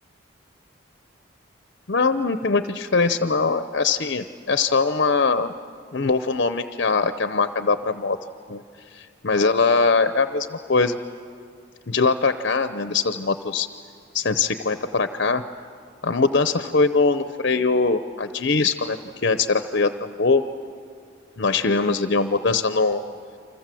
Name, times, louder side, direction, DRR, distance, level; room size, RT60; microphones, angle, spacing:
voice 1, 1.9-5.5 5.9-8.2 8.5-8.6 8.9-11.0 11.9-13.7 14.1-15.4 16.0-20.4 21.4-23.0, left 4 dB, 55° left, 10 dB, 0.7 m, -22 dB
29.5 x 25.0 x 7.7 m, 2.3 s
head